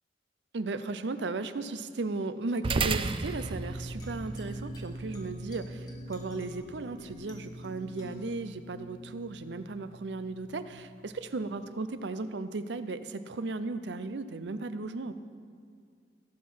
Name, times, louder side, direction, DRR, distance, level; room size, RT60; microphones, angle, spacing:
voice 1, 0.5-15.1, right 3 dB, 75° right, 12 dB, 0.6 m, -36 dB
sound 1, 2.6-11.3, right 3 dB, 30° right, 0.4 m, -37 dB
sound 2, 3.4-10.4, left 2 dB, 25° left, 2.0 m, -51 dB
17.0 x 6.5 x 5.6 m, 2.2 s
head